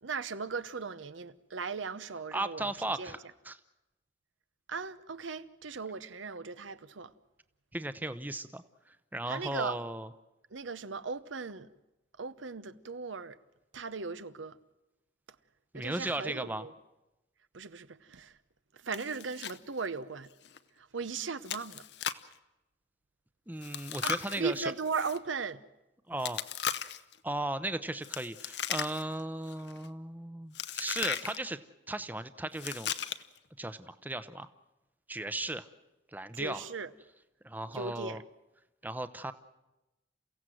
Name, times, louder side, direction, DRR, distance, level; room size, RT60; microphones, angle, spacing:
voice 1, 0.0-2.7 3.0-3.1 4.7-7.1 9.3-9.8 10.5-11.7 12.2-13.4 13.7-14.6 15.7-16.7 17.5-18.4 18.7-20.3 20.8-21.9 24.0-25.6 36.3-36.9 37.7-38.2, right 4 dB, 90° right, 0.9 m, -37 dB
voice 2, 2.3-3.2 3.4-3.6 7.7-10.1 15.7-16.7 23.5-24.7 26.1-26.4 27.2-31.6 31.9-32.9 33.6-34.5 35.1-35.7 36.1-36.6 37.4-38.2 38.8-39.3, right 1 dB, 10° right, 0.7 m, -36 dB
Chewing mastication, 18.9-19.6 19.8-19.9 20.4-20.6 21.4-22.3 23.6-25.2 26.2-27.1 28.0-29.2 29.5-29.9 30.5-31.4 32.5-33.4, left 8 dB, 65° left, 0.8 m, -37 dB
29.0 x 16.0 x 7.8 m
head